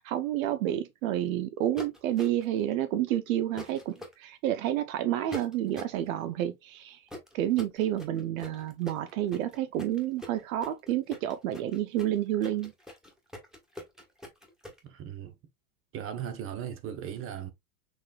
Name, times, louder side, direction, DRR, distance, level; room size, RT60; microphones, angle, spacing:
voice 1, 0.0-7.0 7.3-12.7, right 12 dB, 65° right, 0.7 m, -30 dB
sound 1, 1.8-2.6 3.6-4.1 5.3-6.0 7.1-14.8, left 1 dB, ahead, 1.4 m, -43 dB
voice 2, 14.8-15.3 15.9-17.5, right 9 dB, 30° right, 0.8 m, -37 dB
6.4 x 3.3 x 2.3 m
supercardioid pair, 130°, 44 cm